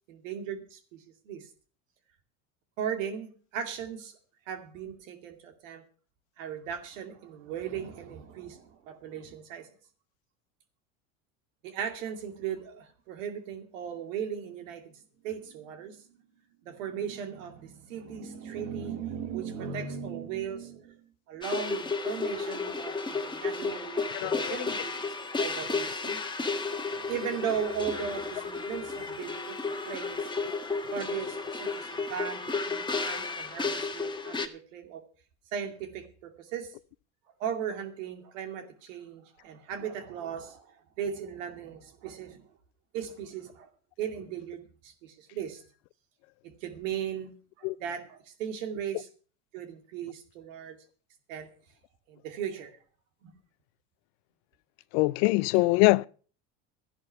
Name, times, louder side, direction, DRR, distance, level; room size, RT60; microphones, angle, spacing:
voice 1, 0.1-1.5 2.8-4.2 4.5-5.8 6.4-9.7 11.6-14.9 15.2-26.2 26.9-29.6 29.8-30.3 30.9-35.0 35.5-36.7 37.4-42.4 42.9-43.7 44.0-45.6 46.4-49.1 49.5-50.8 51.3-51.5 52.1-52.8, right 8 dB, 80° right, 2.6 m, -37 dB
sound 1, 21.4-34.5, left 4 dB, 10° left, 1.6 m, -33 dB
voice 2, 24.1-24.6 47.6-47.8 54.9-56.1, left 24 dB, 65° left, 0.6 m, -23 dB
13.0 x 10.5 x 5.8 m
hypercardioid pair, 90°, 38 cm